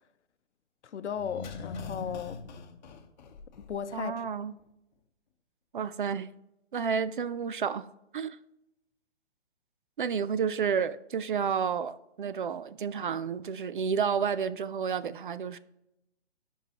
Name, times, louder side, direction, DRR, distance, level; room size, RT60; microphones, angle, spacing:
voice 1, 0.8-2.4 3.6-4.3, left 7 dB, 75° left, 0.7 m, -36 dB
sound 1, 1.1-4.0 4.3-4.4, left 4 dB, 40° left, 1.0 m, -42 dB
voice 2, 3.9-4.6 5.7-6.3 6.7-7.8 8.1-8.4 10.0-15.6, right 6 dB, 45° right, 0.4 m, -30 dB
16.5 x 5.5 x 2.9 m
hypercardioid pair, 155°, 35 cm